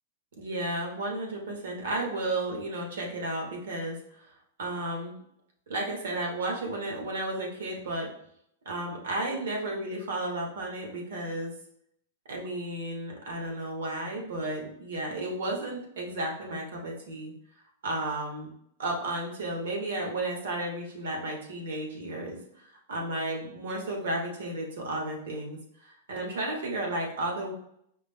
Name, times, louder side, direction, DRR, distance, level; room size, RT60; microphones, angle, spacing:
voice 1, 0.4-4.3 4.6-5.1 5.7-8.1 8.6-11.5 12.3-17.3 17.8-18.5 18.8-27.5, right 1 dB, 85° right, 0 dB, 1.2 m, -33 dB
5.0 x 2.1 x 3.5 m, 0.72 s
supercardioid pair, 170°, 0 cm